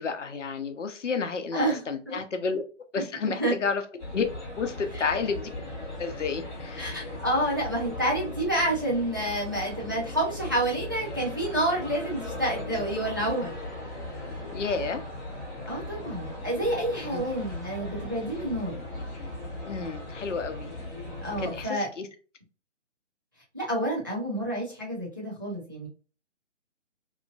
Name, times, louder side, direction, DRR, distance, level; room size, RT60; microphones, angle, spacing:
voice 1, 0.0-2.6 2.9-3.8 4.1-4.3 4.6-5.5 6.0-7.2 14.5-15.0 17.1-17.3 19.6-20.7 21.4-22.1, left 5 dB, 80° left, 0.7 m, -31 dB
sound 1, 4.0-21.7, left 1 dB, 15° left, 0.9 m, -38 dB
voice 2, 6.8-13.5 15.7-18.8 21.2-21.9 23.5-25.9, right 1 dB, 20° right, 0.4 m, -29 dB
2.9 x 2.4 x 2.2 m
figure-of-eight pair, 145°, 37 cm